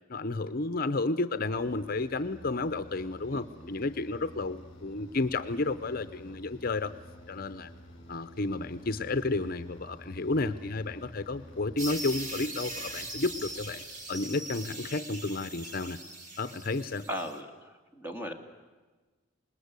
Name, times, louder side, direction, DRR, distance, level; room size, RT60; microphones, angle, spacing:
voice 1, 0.1-6.9 7.3-7.7 8.1-13.8 14.1-16.0 16.4-17.1, left 3 dB, 45° left, 11 dB, 0.7 m, -32 dB
sound 1, 1.5-14.3, equal, 25° left, 5.1 m, -51 dB
sound 2, 11.8-17.4, right 1 dB, 40° right, 2.3 m, -41 dB
voice 2, 17.1-18.3, equal, 10° right, 5 dB, 2.1 m, -37 dB
26.5 x 20.5 x 8.3 m, 1.3 s
head